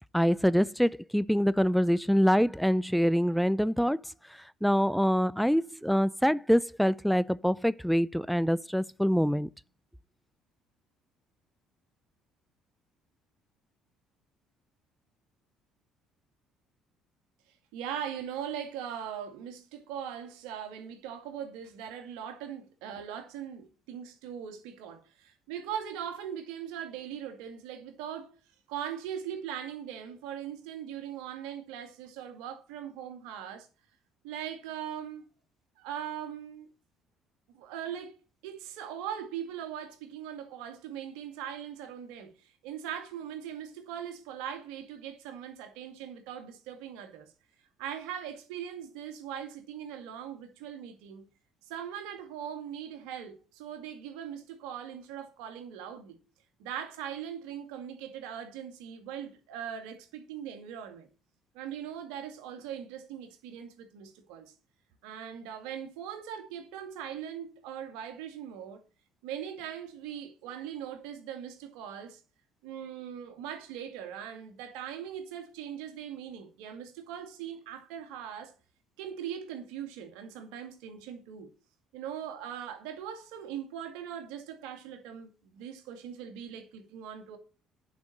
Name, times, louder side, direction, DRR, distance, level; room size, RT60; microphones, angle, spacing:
voice 1, 0.1-4.0 4.6-9.5, equal, ahead, 0.5 m, -25 dB
voice 2, 17.7-28.3 28.7-33.7 34.2-35.2 35.8-36.7 37.5-42.3 42.6-47.3 47.8-51.2 51.7-56.2 56.6-61.1 61.5-64.5 65.0-68.8 69.2-72.2 72.6-78.5 79.0-81.5 81.9-87.4, right 9 dB, 75° right, 2.3 m, -40 dB
10.5 x 6.0 x 6.4 m
hypercardioid pair, 60°, 0 cm